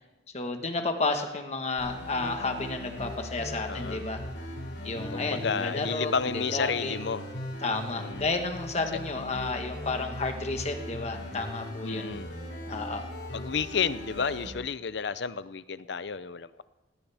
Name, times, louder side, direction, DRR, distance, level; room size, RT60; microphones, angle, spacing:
voice 1, 0.3-4.2 4.8-7.0 7.6-12.1 12.7-13.0, left 3 dB, 35° left, 5 dB, 1.3 m, -32 dB
sound 1, 1.8-14.5, left 1 dB, 80° left, 6.3 m, -39 dB
voice 2, 3.7-4.0 5.1-7.2 8.0-8.3 11.8-12.3 13.3-16.6, left 6 dB, 65° left, 15 dB, 0.6 m, -31 dB
19.0 x 17.5 x 3.5 m, 1.1 s
head